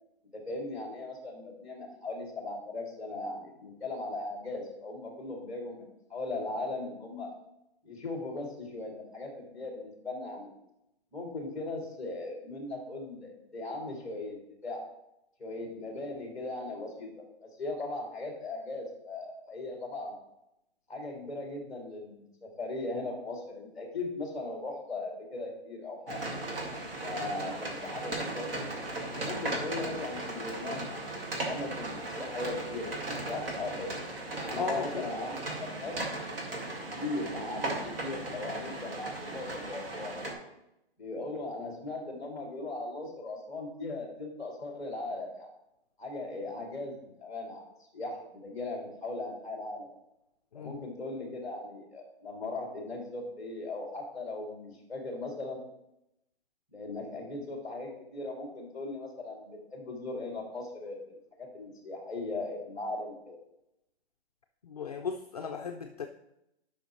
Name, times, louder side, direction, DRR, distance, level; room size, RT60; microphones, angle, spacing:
voice 1, 0.3-7.3 7.8-10.5 11.1-14.4 14.6-14.9 15.4-17.1 17.4-20.2 20.9-26.3 27.0-28.7 29.1-31.1 31.4-34.0 34.4-35.4 35.8-36.0 36.9-40.4 41.0-45.5 46.0-47.6 47.9-50.0 50.5-55.6 56.7-61.0 61.4-63.4, left 2 dB, ahead, 0 dB, 1.8 m, -38 dB
sound 1, 26.1-40.3, right 2 dB, 60° right, 2.0 m, -37 dB
voice 2, 34.6-35.1 50.5-50.7 64.6-66.1, left 5 dB, 40° left, 4 dB, 0.4 m, -35 dB
11.5 x 5.8 x 3.1 m, 0.84 s
hypercardioid pair, 170°, 32 cm